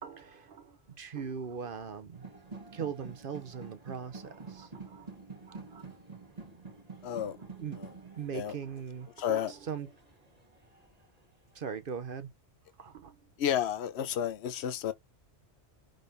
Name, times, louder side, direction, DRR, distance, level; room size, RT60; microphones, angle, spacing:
voice 1, 0.0-2.2 2.7-5.1 5.4-5.8 7.6-7.8 8.2-9.9 11.5-12.3 12.8-13.1, right 6 dB, 55° right, 0.9 m, -40 dB
sound 1, 2.1-11.0, right 4 dB, 35° right, 1.8 m, -48 dB
voice 2, 7.0-7.4 7.8-7.9 8.3-8.5 9.2-9.5 13.4-14.9, left 10 dB, 70° left, 1.0 m, -31 dB
10.5 x 3.6 x 2.7 m
omnidirectional pair, 1.1 m